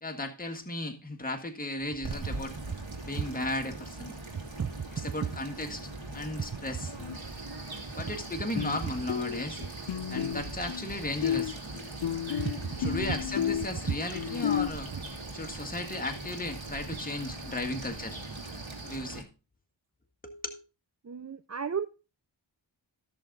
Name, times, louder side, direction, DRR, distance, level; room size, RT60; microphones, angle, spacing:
voice 1, 0.0-2.5 3.0-4.1 5.0-6.9 8.0-9.6 10.1-11.5 12.8-14.9 15.3-18.2 18.8-19.3 20.2-20.6, left 1 dB, 20° left, 4 dB, 1.8 m, -35 dB
sound 1, 1.8-19.2, right 2 dB, 75° right, 2.7 m, -42 dB
sound 2, 7.0-7.2 8.6-8.8 9.1-10.9 11.2-14.7, left 10 dB, 65° left, 0.5 m, -32 dB
sound 3, 7.1-19.0, right 2 dB, 55° right, 4.7 m, -47 dB
voice 2, 21.0-21.9, right 6 dB, 35° right, 12 dB, 0.5 m, -32 dB
14.5 x 6.8 x 3.9 m, 0.32 s
wide cardioid pair, 40°, 46 cm